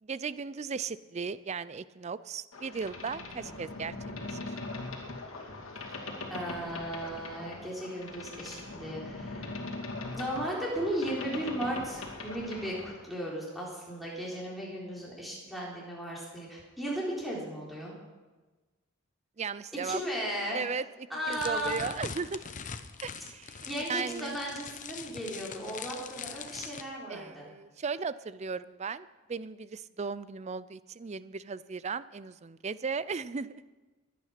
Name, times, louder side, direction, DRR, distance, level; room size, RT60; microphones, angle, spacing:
voice 1, 0.0-3.9 4.3-4.6 19.4-20.0 20.5-22.4 23.0-24.4 27.1-33.6, right 5 dB, 30° right, 16 dB, 0.4 m, -36 dB
Boat Water vehicle, 2.5-13.0, left 2 dB, 70° left, 2.5 m, -41 dB
voice 2, 6.3-9.6 10.1-17.9 19.8-20.6 21.1-21.9 23.6-27.5, equal, ahead, -5 dB, 4.1 m, -36 dB
sound 1, 21.3-26.8, left 6 dB, 35° left, 0.8 m, -42 dB
22.0 x 9.4 x 5.9 m, 1.2 s
head